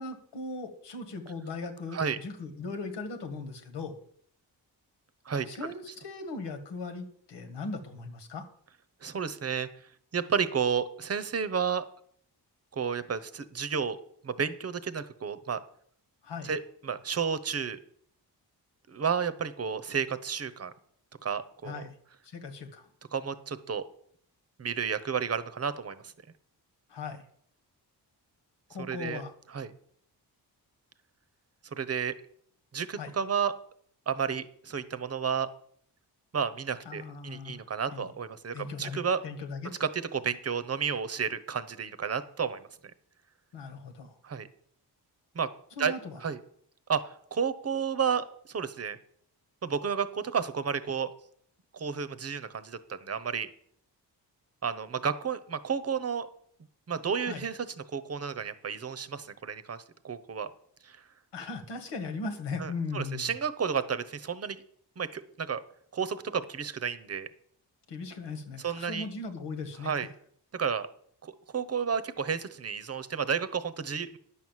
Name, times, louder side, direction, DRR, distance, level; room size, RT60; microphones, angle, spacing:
voice 1, 0.0-3.9 5.5-8.5 16.2-16.5 21.6-22.0 22.2-22.9 26.9-27.2 28.7-29.3 33.0-33.1 36.9-37.6 37.9-38.1 38.5-39.7 43.5-44.2 45.8-46.2 57.3-57.4 61.3-63.3 67.9-69.9, left 3 dB, 85° left, 7 dB, 1.8 m, -38 dB
voice 2, 5.3-5.7 9.0-9.7 10.1-11.9 12.7-14.0 14.2-15.6 16.4-17.8 18.9-20.7 21.2-21.8 23.1-23.8 24.6-26.1 28.9-29.2 29.5-29.7 31.7-32.1 32.7-33.5 34.1-35.5 36.3-39.2 39.8-42.7 44.2-44.5 45.3-45.5 45.8-45.9 46.2-46.4 46.9-49.0 49.6-51.1 51.7-53.5 54.6-56.3 56.9-60.5 60.8-61.0 62.6-64.6 65.0-65.6 65.9-67.3 68.6-69.1 69.8-70.1 70.5-70.9 71.2-74.2, right 6 dB, 35° right, 13 dB, 0.9 m, -31 dB
10.0 x 6.3 x 7.5 m, 0.63 s
cardioid pair, 95°, 41 cm